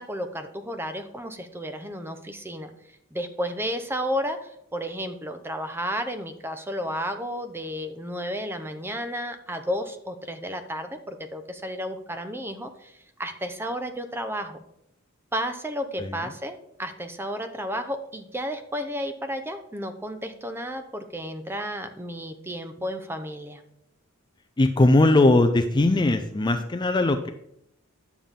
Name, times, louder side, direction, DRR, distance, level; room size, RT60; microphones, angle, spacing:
voice 1, 0.0-2.7 3.1-14.6 15.3-23.6, equal, 10° right, 8 dB, 0.7 m, -32 dB
voice 2, 16.0-16.3 24.6-27.3, left 2 dB, 20° left, 7 dB, 0.5 m, -20 dB
10.0 x 7.1 x 3.7 m, 0.75 s
head